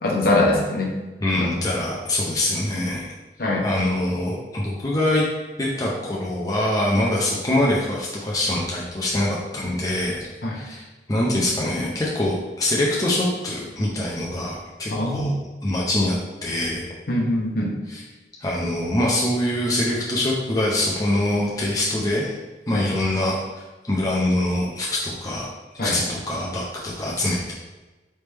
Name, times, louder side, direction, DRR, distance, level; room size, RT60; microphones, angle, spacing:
voice 1, 0.0-0.9 1.4-1.5 3.4-3.6 10.4-10.6 14.9-15.3 17.1-17.8 22.7-22.8 25.8-26.0, left 2 dB, 55° left, -2 dB, 0.8 m, -22 dB
voice 2, 1.2-3.1 3.6-5.2 5.6-10.2 10.5-10.8 11.1-15.3 15.6-16.9 17.9-18.0 18.4-22.3 22.7-23.4 23.9-25.5 25.8-27.5, left 1 dB, 20° left, -4 dB, 0.5 m, -24 dB
4.1 x 3.3 x 3.3 m, 1.2 s
head